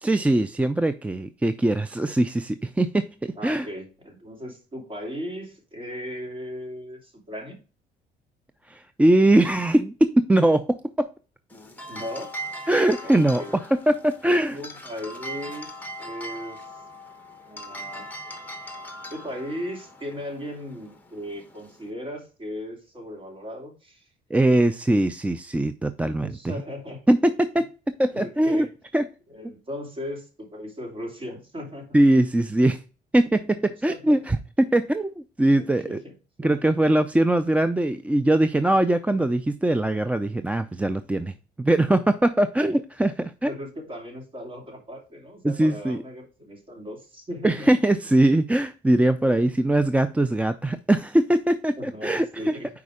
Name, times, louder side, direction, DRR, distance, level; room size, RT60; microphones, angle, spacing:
voice 1, 0.0-3.7 8.7-11.1 12.7-14.6 24.3-26.5 27.1-27.7 28.0-28.7 28.9-29.1 31.9-32.8 33.1-36.0 36.4-43.5 45.4-46.0 47.4-52.6, right 1 dB, 10° right, 0.3 m, -21 dB
voice 2, 3.4-7.6 11.9-12.4 13.0-13.6 14.5-16.8 17.4-18.1 19.1-24.1 26.2-27.0 28.1-28.7 29.3-32.0 33.9-34.2 35.5-36.1 36.4-36.6 39.2-39.3 43.4-47.7 49.4-49.5 51.8-52.7, equal, 30° right, 2.7 m, -37 dB
sound 1, 11.5-21.9, equal, 10° left, 1.1 m, -40 dB
5.1 x 4.8 x 4.9 m
cardioid pair, 110°, 17 cm